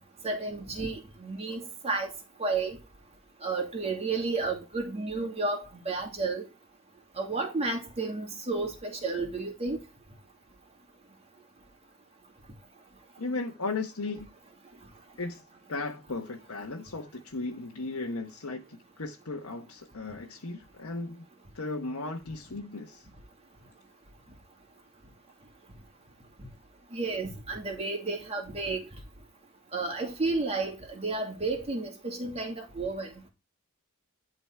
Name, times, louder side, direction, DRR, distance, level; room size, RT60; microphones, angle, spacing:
voice 1, 0.2-2.1 2.4-2.8 3.4-6.5 7.2-9.8 26.9-28.9 29.7-33.1, right 3 dB, 30° right, 2.5 m, -32 dB
voice 2, 13.2-14.3 15.2-15.4 15.7-21.2 21.5-23.1, left 3 dB, 75° left, 1.2 m, -36 dB
11.5 x 4.0 x 4.6 m
head